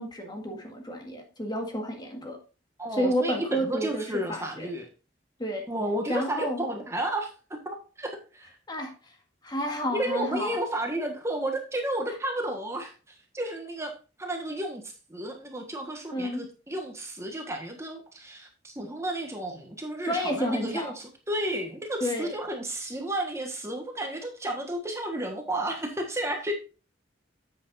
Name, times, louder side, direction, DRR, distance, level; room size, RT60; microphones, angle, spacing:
voice 1, 0.0-2.4 2.9-4.7 5.4-5.6 6.1-6.6 8.7-9.1 9.4-10.6 16.1-16.4 20.0-20.9 22.0-22.3, equal, 25° left, 3 dB, 1.7 m, -30 dB
voice 2, 2.8-4.9 5.7-7.3 7.6-8.6 9.9-13.9 14.2-26.5, right 1 dB, 15° right, 2 dB, 1.4 m, -32 dB
10.0 x 7.9 x 2.6 m, 0.33 s
head